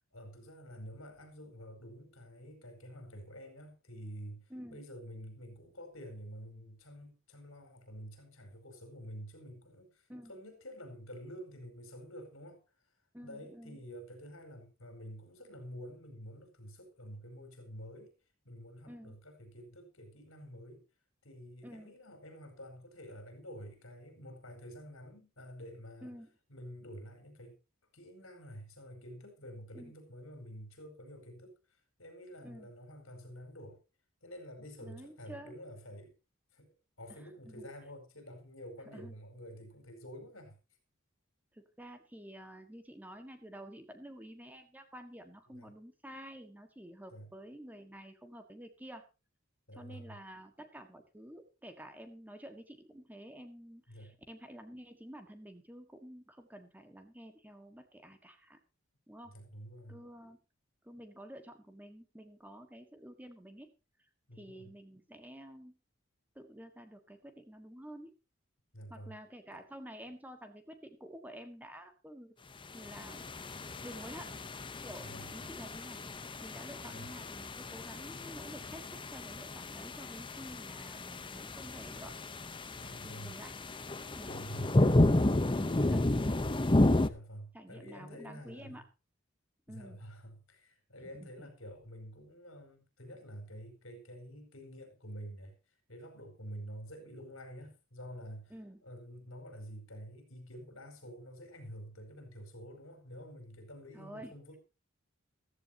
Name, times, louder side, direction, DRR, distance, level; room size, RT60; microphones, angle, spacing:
voice 1, 0.1-12.6 13.2-18.1 18.4-20.8 21.2-26.2 26.5-27.6 27.9-31.5 32.0-33.8 34.2-36.1 36.5-40.6 45.5-45.7 47.1-47.3 49.7-50.2 53.9-54.2 59.2-60.0 64.3-64.7 68.7-69.2 69.5-69.6 75.0-75.3 76.9-77.1 82.8-83.4 84.2-84.8 85.2-85.4 87.1-88.8 89.7-95.6 95.9-98.6 98.8-104.6, equal, 70° left, 5.0 m, -49 dB
voice 2, 13.1-13.8 18.9-19.1 21.6-21.9 26.0-26.3 29.7-29.9 32.4-32.7 34.8-35.5 37.1-37.7 38.9-39.1 41.5-49.0 49.7-58.6 59.1-59.3 59.9-60.4 60.8-63.7 64.3-65.8 66.3-68.1 68.9-72.3 72.7-73.2 73.8-74.3 74.8-76.0 76.4-82.2 83.0-83.6 84.1-84.3 85.6-86.1 87.5-88.8 89.7-90.0 91.0-91.5 98.5-98.8 103.9-104.3, equal, 10° right, 1.6 m, -50 dB
sound 1, 72.8-87.1, left 1 dB, 25° left, 0.8 m, -32 dB
15.0 x 14.5 x 2.9 m
head